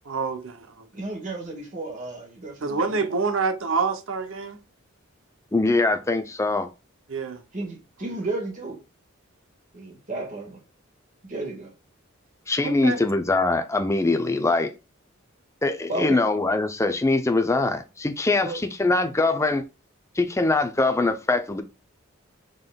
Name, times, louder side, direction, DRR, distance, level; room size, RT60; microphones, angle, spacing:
voice 1, 0.0-0.9 2.6-4.6 7.1-7.4 12.6-13.0, right 4 dB, 65° right, 0.7 m, -27 dB
voice 2, 0.9-3.0 7.5-8.8 9.7-10.6 11.2-11.7 15.9-16.2 18.4-18.6, right 2 dB, 40° right, 1.5 m, -33 dB
voice 3, 5.5-6.7 12.5-14.7 15.6-19.6 20.2-21.6, left 2 dB, 15° left, 0.5 m, -23 dB
5.2 x 3.9 x 2.2 m
head